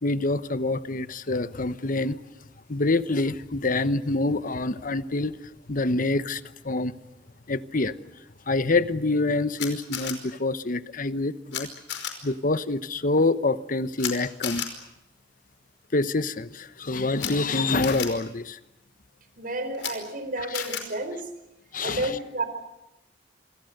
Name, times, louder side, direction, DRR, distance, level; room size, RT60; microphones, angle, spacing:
voice 1, 0.0-2.2 2.7-5.4 5.7-6.9 7.5-7.9 8.5-11.7 12.2-14.7 15.9-18.6 20.5-20.6 21.7-22.1, left 2 dB, 50° left, 14 dB, 1.1 m, -26 dB
Camera, 9.6-10.1 11.5-11.6 11.9-12.1 14.0-14.1 14.4-14.7 17.1-17.3 17.8-18.1 19.7-19.9 20.5-20.8, left 10 dB, 90° left, 5.1 m, -31 dB
voice 2, 19.4-21.3 21.8-22.4, right 2 dB, 50° right, 10 dB, 4.4 m, -31 dB
26.5 x 26.5 x 6.7 m, 0.95 s
head